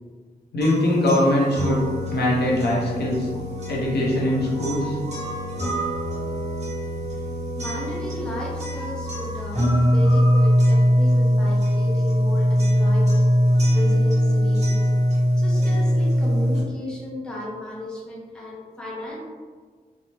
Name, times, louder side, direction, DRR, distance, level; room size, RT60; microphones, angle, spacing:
voice 1, 0.5-1.8 2.1-3.3 3.7-5.0, left 1 dB, 85° left, -4 dB, 0.7 m, -21 dB
sound 1, 0.6-16.6, equal, 45° right, 1.0 m, -22 dB
voice 2, 7.6-13.3 13.7-14.9 15.4-19.2, left 1 dB, 5° left, -5 dB, 0.7 m, -34 dB
3.2 x 2.0 x 2.7 m, 1.5 s
wide cardioid pair, 110°, 17 cm